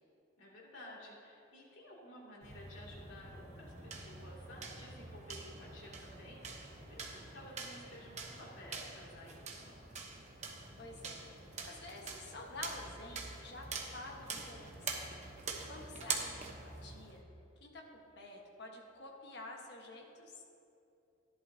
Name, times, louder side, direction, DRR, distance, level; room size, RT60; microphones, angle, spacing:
voice 1, 0.4-9.9 15.5-15.8, left 1 dB, 75° left, -4 dB, 2.6 m, -54 dB
sound 1, 2.4-17.2, right 4 dB, 35° right, 0.9 m, -45 dB
voice 2, 10.8-15.0 15.6-17.2 17.6-20.4, left 2 dB, 55° left, 0 dB, 1.4 m, -49 dB
14.5 x 11.0 x 2.8 m, 2.8 s
head